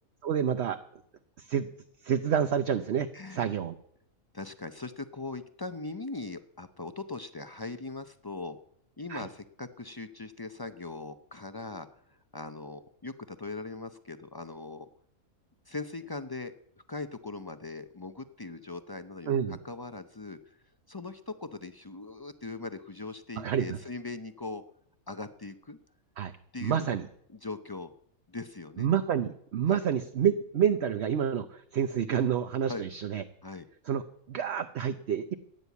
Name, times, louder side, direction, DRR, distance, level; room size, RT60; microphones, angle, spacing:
voice 1, 0.2-0.8 1.4-1.7 2.0-3.7 9.1-9.2 19.3-19.6 23.4-23.8 26.2-26.3 26.6-27.1 28.8-33.2 33.9-35.3, right 8 dB, 55° right, 9 dB, 0.9 m, -28 dB
voice 2, 3.1-3.5 4.3-8.6 9.0-14.9 15.7-16.5 16.9-20.6 20.9-24.6 25.1-25.8 26.5-26.9 27.3-27.9 28.3-28.9 29.7-29.8 32.7-32.8 33.4-33.7, left 3 dB, 35° left, 10 dB, 0.3 m, -40 dB
14.5 x 9.9 x 8.3 m, 0.69 s
omnidirectional pair, 1.5 m